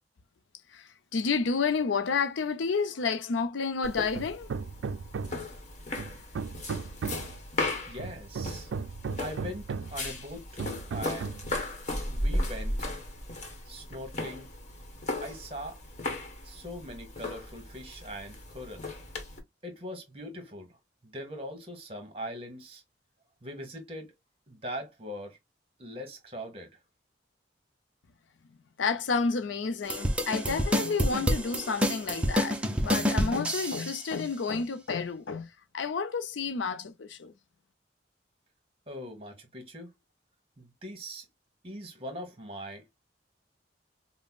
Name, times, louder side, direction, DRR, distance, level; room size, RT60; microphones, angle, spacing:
voice 1, 0.7-4.5 28.8-37.3, left 5 dB, 85° left, 0.5 m, -30 dB
sound 1, 3.8-19.4, left 1 dB, 40° left, 1.1 m, -36 dB
Hammer, 4.1-5.5 6.0-7.4 8.0-10.0 10.6-11.5, right 5 dB, 85° right, 0.3 m, -36 dB
voice 2, 7.9-8.7 9.2-11.4 12.1-12.9 13.7-14.5 15.2-15.8 16.4-18.9 19.6-20.8 21.0-22.8 23.4-24.1 24.5-25.4 25.8-26.8 38.9-39.9 40.6-41.3 41.6-43.0, equal, 30° right, 1.2 m, -41 dB
sound 2, 29.9-34.0, equal, 5° right, 0.5 m, -28 dB
5.2 x 2.1 x 2.3 m
head